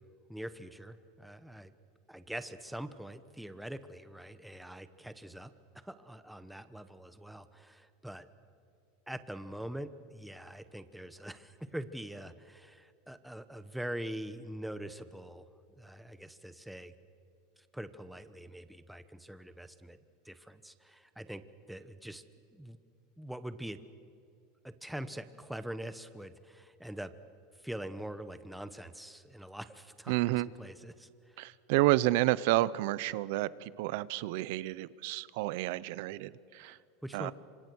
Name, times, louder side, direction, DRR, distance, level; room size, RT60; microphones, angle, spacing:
voice 1, 0.3-1.7 2.1-8.3 9.1-15.5 15.8-16.9 17.6-20.0 20.2-21.4 21.7-22.2 22.5-22.8 23.2-23.8 24.6-27.1 27.6-31.4 36.6-37.3, right 1 dB, ahead, 11 dB, 1.0 m, -44 dB
voice 2, 30.1-30.5 31.4-36.8 37.1-37.3, right 17 dB, 65° right, 19 dB, 0.7 m, -30 dB
27.0 x 25.5 x 6.3 m, 2.5 s
supercardioid pair, 140°, 0 cm